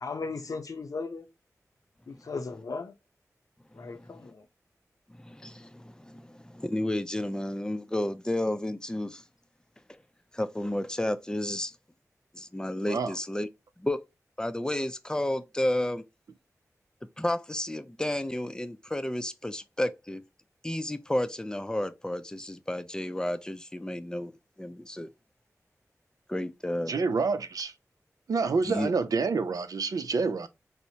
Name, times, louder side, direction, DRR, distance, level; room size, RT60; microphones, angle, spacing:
voice 1, 0.0-1.3 2.1-2.9 3.8-4.4, left 4 dB, 70° left, 0.6 m, -36 dB
voice 2, 3.8-4.3 5.2-9.2 10.3-11.7 12.3-13.5 13.8-14.0 14.4-16.0 17.2-20.2 20.6-24.3 24.6-25.1 26.3-26.9 28.7-28.9, left 1 dB, 10° left, 0.4 m, -32 dB
voice 3, 26.9-27.7 28.3-30.5, right 4 dB, 80° right, 0.4 m, -27 dB
4.3 x 2.1 x 2.7 m
cardioid pair, 45°, 6 cm